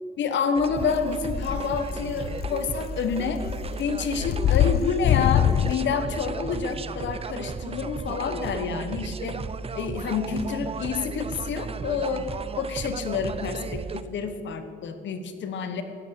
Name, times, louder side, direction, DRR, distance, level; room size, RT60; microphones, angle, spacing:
voice 1, 0.2-3.4 3.8-9.4 9.7-12.2 12.6-15.8, left 6 dB, 65° left, 8 dB, 1.3 m, -28 dB
sound 1, 0.5-14.0, right 5 dB, 30° right, 0.6 m, -35 dB
sound 2, 0.8-1.0 1.3-5.7, left 11 dB, 50° left, 0.4 m, -24 dB
13.5 x 8.4 x 6.9 m, 2.6 s
cardioid pair, 90°, 20 cm